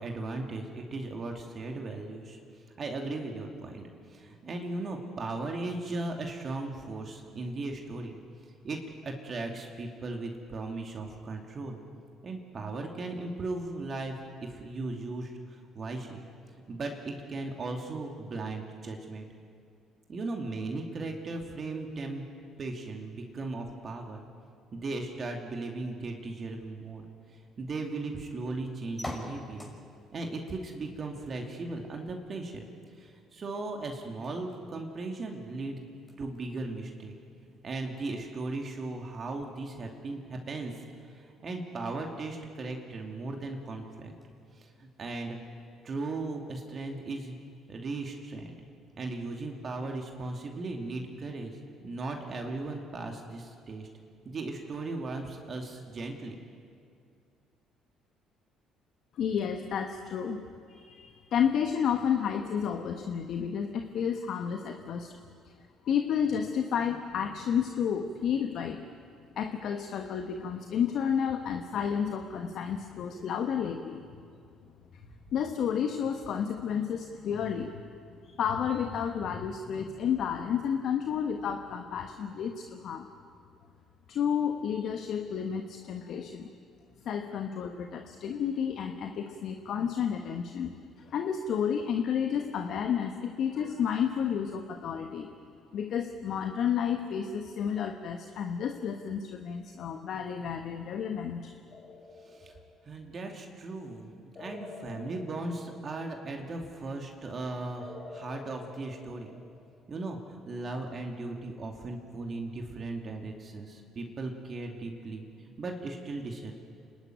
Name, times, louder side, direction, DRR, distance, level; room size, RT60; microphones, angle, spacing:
voice 1, 0.0-2.4 2.8-8.2 8.6-11.8 12.2-16.3 16.5-19.3 20.1-22.2 22.6-24.2 24.7-27.0 27.3-29.7 30.1-32.7 33.0-35.9 36.2-37.1 37.4-40.7 41.1-44.1 44.5-45.4 45.8-47.4 47.7-48.6 49.0-51.6 51.8-53.9 54.2-56.4 102.2-102.6 102.9-109.3 109.9-116.5, right 2 dB, 45° right, 2 dB, 2.7 m, -37 dB
sound 1, 29.0-47.7, left 1 dB, 15° left, 5.8 m, -52 dB
voice 2, 59.1-60.4 60.7-65.1 65.8-68.8 69.4-74.0 75.3-77.8 78.2-83.1 84.1-86.5 87.0-95.3 95.7-101.5, left 8 dB, 60° left, 5 dB, 1.3 m, -31 dB
sound 2, 101.7-103.1 104.3-106.5 107.8-109.9, left 3 dB, 45° left, 4.7 m, -48 dB
28.0 x 12.0 x 9.4 m, 2.3 s
hypercardioid pair, 55°, 0 cm